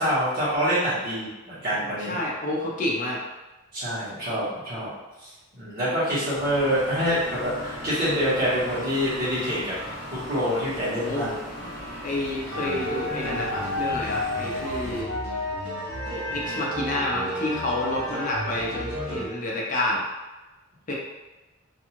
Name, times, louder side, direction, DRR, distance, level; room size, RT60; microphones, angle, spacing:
voice 1, 0.0-2.2 3.7-4.9 5.2-9.7 10.1-11.3, equal, 45° right, -10 dB, 1.1 m, -26 dB
voice 2, 1.6-3.2 11.0-11.3 12.0-15.1 16.0-20.0 20.9-21.0, left 1 dB, 40° left, -3 dB, 0.6 m, -29 dB
sound 1, 6.3-15.0, left 1 dB, 5° right, 0.7 m, -38 dB
sound 2, 12.5-19.3, left 1 dB, 75° right, 0.7 m, -31 dB
2.6 x 2.3 x 2.9 m, 1.1 s
head